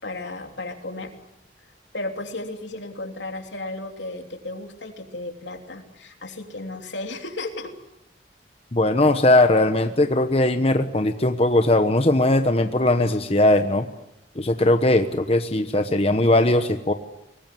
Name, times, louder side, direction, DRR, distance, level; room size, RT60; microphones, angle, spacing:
voice 1, 0.0-1.1 1.9-7.7, left 2 dB, 80° left, 4 dB, 3.2 m, -34 dB
voice 2, 8.7-13.8 14.4-16.9, left 1 dB, 35° left, 7 dB, 1.1 m, -19 dB
23.5 x 19.5 x 9.2 m, 0.86 s
head